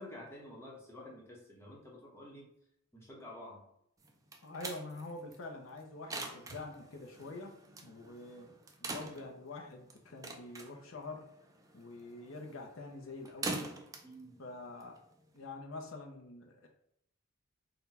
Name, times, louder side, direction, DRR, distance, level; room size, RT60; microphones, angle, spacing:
voice 1, 0.0-2.5 2.9-3.6 14.0-14.4, left 1 dB, 15° left, -3 dB, 0.9 m, -50 dB
sound 1, 4.0-15.4, right 3 dB, 15° right, 0.4 m, -45 dB
voice 2, 4.4-7.5 7.8-11.3 11.7-13.8 14.4-15.0 15.3-16.7, left 2 dB, 75° left, 2 dB, 0.6 m, -46 dB
4.0 x 2.2 x 4.0 m, 0.75 s
head